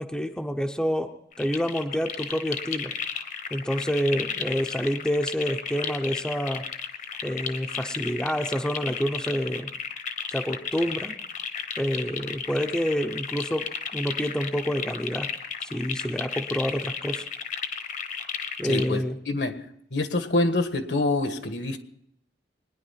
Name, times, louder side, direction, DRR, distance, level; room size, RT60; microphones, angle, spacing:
voice 1, 0.0-2.9 3.5-6.7 7.2-9.7 10.3-11.2 11.8-15.3 15.6-17.2 18.6-19.2, equal, 5° left, 4 dB, 0.8 m, -28 dB
sound 1, 1.3-18.9, left 6 dB, 45° left, 1.2 m, -34 dB
voice 2, 18.6-19.6 19.9-21.8, left 2 dB, 65° left, 8 dB, 1.6 m, -26 dB
23.0 x 10.5 x 5.8 m, 0.76 s
head